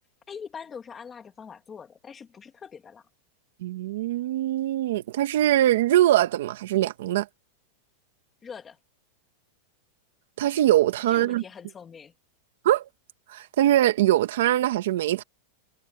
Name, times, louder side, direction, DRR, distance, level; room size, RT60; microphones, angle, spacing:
voice 1, 0.3-3.1 8.4-8.8 11.1-12.1, left 6 dB, 15° left, 1.9 m, -42 dB
voice 2, 3.6-7.3 10.4-11.4 12.6-12.8 13.3-15.2, right 13 dB, 65° right, 1.4 m, -22 dB
supercardioid pair, 170°, 0 cm